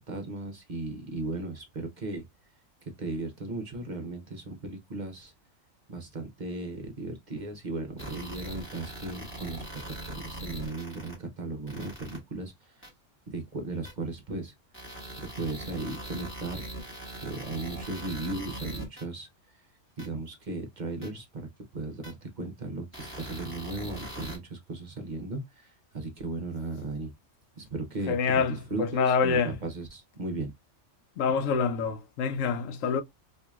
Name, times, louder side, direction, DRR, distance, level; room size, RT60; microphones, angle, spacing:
voice 1, 0.0-2.2 3.0-5.3 5.9-12.9 13.3-14.5 15.4-16.6 17.2-19.3 20.0-27.1 27.6-30.5, right 2 dB, 45° right, 0.7 m, -36 dB
sound 1, 8.0-11.1 11.7-12.2 12.8-12.9 13.8-13.9 14.7-19.0 20.0-20.1 21.0-21.1 22.0-22.1 22.9-24.4, right 1 dB, 10° left, 1.1 m, -40 dB
voice 2, 28.1-29.6 31.2-33.0, left 5 dB, 85° left, 1.0 m, -26 dB
4.5 x 2.6 x 2.3 m
omnidirectional pair, 1.3 m